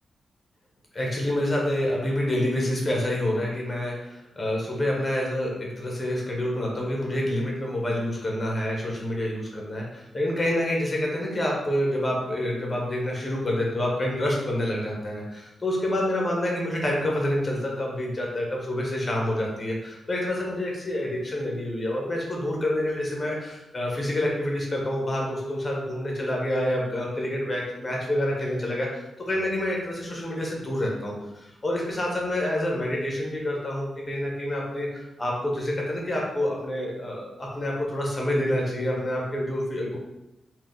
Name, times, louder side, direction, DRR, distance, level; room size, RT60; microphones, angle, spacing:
voice 1, 0.9-40.0, left 1 dB, 20° left, -2 dB, 0.9 m, -27 dB
4.1 x 2.4 x 3.7 m, 0.93 s
wide cardioid pair, 170°, 0 cm